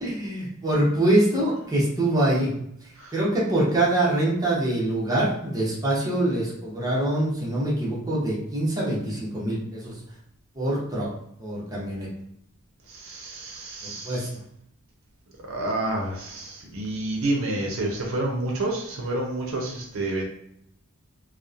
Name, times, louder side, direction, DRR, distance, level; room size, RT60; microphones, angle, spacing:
voice 1, 0.0-2.5 3.1-9.9 10.6-11.1 11.4-12.1 13.8-14.3, right 1 dB, 15° right, -6 dB, 0.7 m, -24 dB
voice 2, 13.0-14.2 15.5-20.3, right 2 dB, 70° right, -1 dB, 0.6 m, -29 dB
2.9 x 2.0 x 2.4 m, 0.72 s
head